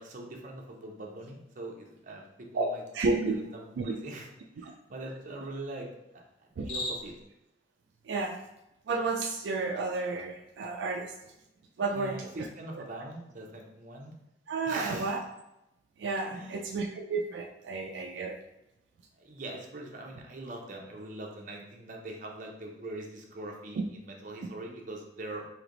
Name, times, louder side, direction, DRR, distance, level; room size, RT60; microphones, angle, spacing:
voice 1, 0.0-2.8 3.3-4.3 4.6-5.9 6.1-6.2 6.6-7.1 11.9-14.1 14.7-15.2 16.3-16.6 19.2-25.5, right 2 dB, 50° right, 0 dB, 0.7 m, -42 dB
voice 2, 2.5-3.3 3.8-3.9 4.6-4.7 6.6-6.7 8.1-8.4 8.9-11.1 11.8-12.5 12.7-12.8 14.5-15.2 16.0-18.4, right 3 dB, 85° right, 3 dB, 0.4 m, -32 dB
Cricket, 6.5-7.3, left 2 dB, 80° left, 1.3 m, -37 dB
3.3 x 2.8 x 3.8 m, 0.88 s
head